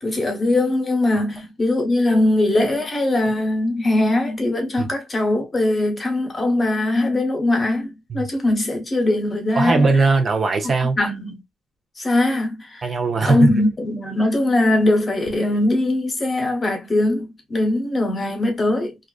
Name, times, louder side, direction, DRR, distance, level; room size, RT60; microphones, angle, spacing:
voice 1, 0.0-9.9 11.0-11.4 12.0-12.9 13.2-19.0, left 2 dB, 30° left, 1.0 m, -21 dB
voice 2, 9.6-11.0 12.8-13.5, right 3 dB, 45° right, 0.6 m, -19 dB
2.4 x 2.3 x 2.2 m
cardioid pair, 90°, 0 cm